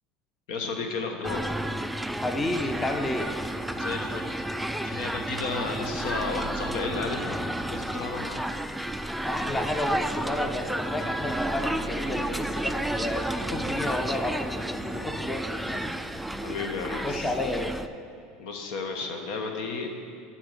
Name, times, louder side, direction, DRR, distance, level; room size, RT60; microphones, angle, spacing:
voice 1, 0.5-1.6 3.7-4.4 4.8-7.3 7.7-8.5 16.4-17.3 18.4-19.9, left 4 dB, 70° left, 4 dB, 1.1 m, -33 dB
sound 1, 1.2-17.9, right 1 dB, ahead, 0.3 m, -31 dB
voice 2, 2.2-3.3 9.2-15.9 17.0-17.8, left 1 dB, 20° left, 4 dB, 0.7 m, -31 dB
12.0 x 4.4 x 6.2 m, 2.3 s
supercardioid pair, 115°, 0 cm